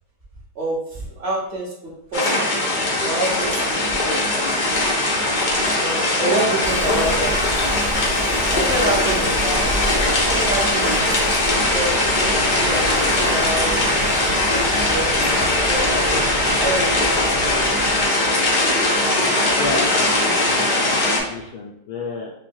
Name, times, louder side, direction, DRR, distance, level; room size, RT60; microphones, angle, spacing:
voice 1, 0.5-4.2 5.1-5.2 5.6-7.3 8.5-9.7 10.2-12.1 12.5-13.8 14.4-17.1 17.4-17.5, right 1 dB, 40° right, -4 dB, 1.1 m, -27 dB
sound 1, 2.1-21.2, left 2 dB, 55° left, 0.5 m, -20 dB
sound 2, 2.5-21.5, right 1 dB, 70° right, 1.7 m, -34 dB
Wind, 6.6-18.0, right 1 dB, 5° right, 0.6 m, -32 dB
voice 2, 19.6-21.0 21.3-22.3, left 3 dB, 70° left, -3 dB, 0.9 m, -31 dB
5.6 x 2.2 x 2.6 m, 0.78 s
omnidirectional pair, 2.0 m